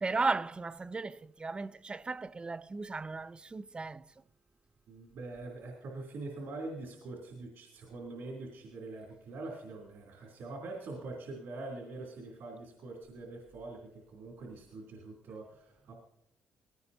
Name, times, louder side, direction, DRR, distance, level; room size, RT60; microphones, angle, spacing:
voice 1, 0.0-4.0, right 3 dB, 25° right, 0.4 m, -35 dB
voice 2, 4.9-15.9, right 2 dB, 75° right, 3.0 m, -44 dB
19.5 x 17.0 x 2.7 m
cardioid pair, 80°, 4 cm